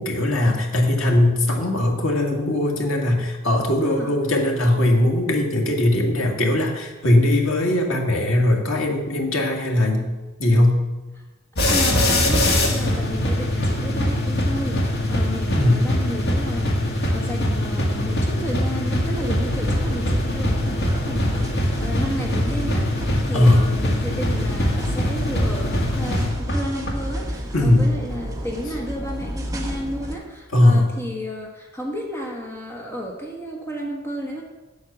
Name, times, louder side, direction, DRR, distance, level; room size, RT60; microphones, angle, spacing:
voice 1, 0.0-10.1 10.4-10.8 15.5-15.8 23.3-23.7 27.5-27.9 30.5-30.9, left 1 dB, 85° left, 1 dB, 2.2 m, -19 dB
voice 2, 3.8-4.1 11.2-11.3 11.6-34.4, equal, 10° left, 0 dB, 1.5 m, -32 dB
sound 1, 11.6-26.9, left 1 dB, 55° left, 1.9 m, -23 dB
sound 2, 19.2-30.2, equal, 15° right, 1.4 m, -31 dB
8.7 x 8.0 x 6.9 m, 1.1 s
head